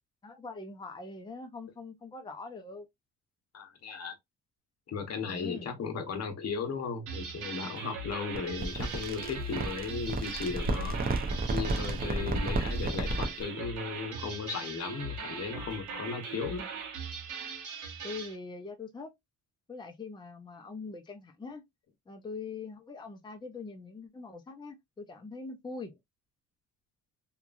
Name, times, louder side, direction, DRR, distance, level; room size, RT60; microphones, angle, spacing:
voice 1, 0.2-2.9 5.2-5.7 12.3-12.6 18.0-19.1 19.7-21.6 22.1-25.9, left 4 dB, 15° left, 0.6 m, -43 dB
voice 2, 3.5-4.2 4.9-11.0 11.5-16.7, left 5 dB, 55° left, 1.0 m, -36 dB
sound 1, 7.1-18.3, right 4 dB, 75° right, 1.2 m, -40 dB
sound 2, 8.3-13.4, right 2 dB, 30° right, 0.7 m, -32 dB
2.9 x 2.3 x 2.5 m
cardioid pair, 90°, 30 cm